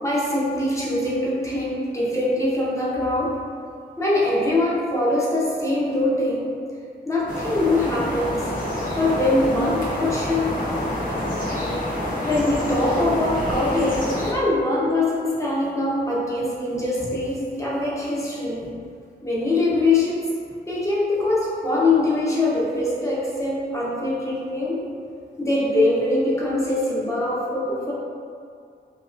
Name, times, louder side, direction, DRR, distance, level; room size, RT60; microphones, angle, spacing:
voice 1, 0.0-3.3 4.0-6.6 7.1-8.5 8.9-10.8 11.8-18.7 19.2-20.2 20.7-24.8 25.4-27.9, left 2 dB, 15° left, -7 dB, 0.8 m, -23 dB
sound 1, 7.3-14.3, left 1 dB, 50° left, 0.7 m, -27 dB
4.6 x 2.3 x 2.5 m, 2.3 s
wide cardioid pair, 145°, 18 cm